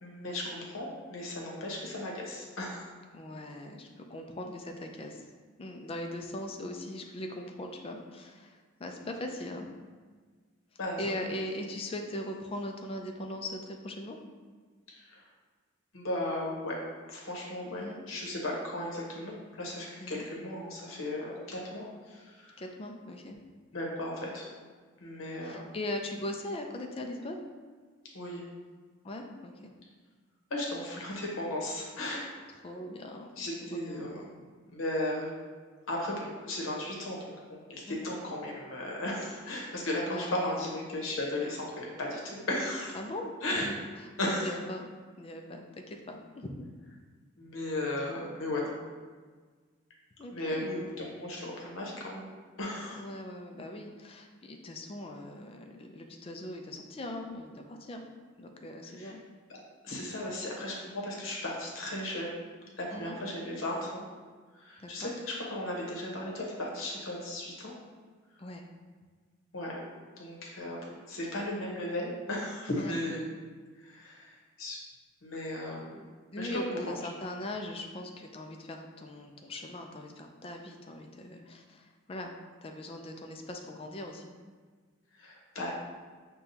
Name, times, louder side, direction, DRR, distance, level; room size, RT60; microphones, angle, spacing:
voice 1, 0.0-2.9 10.8-11.3 14.9-15.3 15.9-16.8 17.1-22.6 23.7-24.5 25.0-25.7 28.1-28.4 30.5-32.3 33.4-34.2 34.6-35.3 35.9-37.2 37.7-43.0 43.4-43.7 44.2-44.5 47.4-48.7 50.3-52.3 52.6-53.0 58.8-59.1 59.8-62.4 62.8-64.1 64.5-67.7 69.5-69.8 70.2-70.8 71.1-73.3 73.8-74.8 75.2-75.9 76.4-76.5 85.1-85.7, left 1 dB, 80° left, -2 dB, 0.9 m, -36 dB
voice 2, 3.1-5.2 5.6-9.7 11.0-14.2 17.7-18.0 20.0-20.2 22.6-23.4 25.4-27.4 29.0-29.7 32.6-34.1 37.9-38.1 40.1-40.7 42.9-43.9 44.3-44.9 45.2-46.7 50.2-50.9 52.9-58.1 58.4-59.2 62.9-63.2 64.8-65.1 68.4-68.6 72.8-73.0 76.3-82.3 82.6-84.3, left 1 dB, 30° left, 3 dB, 0.4 m, -40 dB
6.7 x 2.3 x 2.7 m, 1.5 s
head